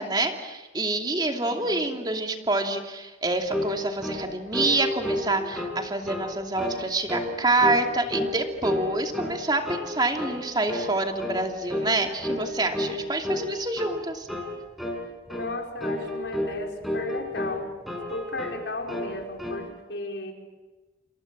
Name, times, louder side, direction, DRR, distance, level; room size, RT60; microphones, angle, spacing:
voice 1, 0.0-14.3, right 2 dB, 20° right, 4 dB, 2.7 m, -27 dB
voice 2, 1.3-1.8 15.3-17.7 18.1-20.3, left 2 dB, 70° left, 2 dB, 5.3 m, -35 dB
sound 1, 3.5-3.8 4.0-4.3 4.5-5.8 6.1-6.3 6.6-6.8 7.1-7.3 7.6-8.4 8.6-9.4 9.6-9.9 10.2-10.4 10.7-10.9 11.2-11.4 11.7-12.0 12.2-12.4 12.7-13.0 13.2-13.5 13.8-14.0 14.3-14.5 14.8-15.0 15.3-15.5 15.8-16.6 16.8-17.6 17.9-18.6 18.9-19.6, left 1 dB, ahead, 5.4 m, -30 dB
29.0 x 27.0 x 7.5 m, 1.2 s
head